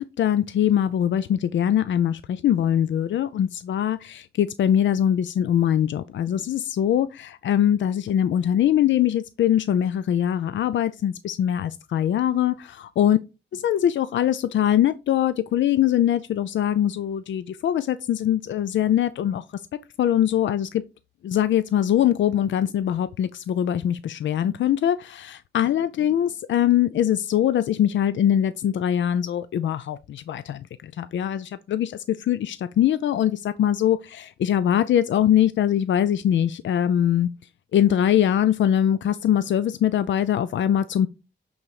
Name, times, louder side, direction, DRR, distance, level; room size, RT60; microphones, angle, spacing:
voice 1, 0.0-13.2 13.5-19.4 20.0-20.8 21.2-37.3 37.7-41.1, left 10 dB, 90° left, 0.4 m, -22 dB
8.7 x 4.0 x 4.7 m
wide cardioid pair, 125°, 19 cm